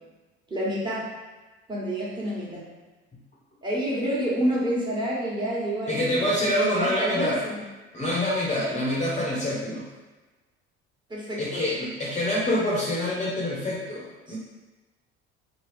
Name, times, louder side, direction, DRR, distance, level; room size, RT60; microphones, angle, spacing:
voice 1, 0.5-1.0 1.7-2.6 3.6-7.6 11.1-11.6 14.3-14.4, right 1 dB, 15° right, -7 dB, 1.3 m, -28 dB
voice 2, 5.9-7.4 7.9-9.8 11.4-14.4, left 1 dB, 25° left, -5 dB, 0.9 m, -26 dB
2.9 x 2.4 x 3.4 m, 1.2 s
hypercardioid pair, 65°, 31 cm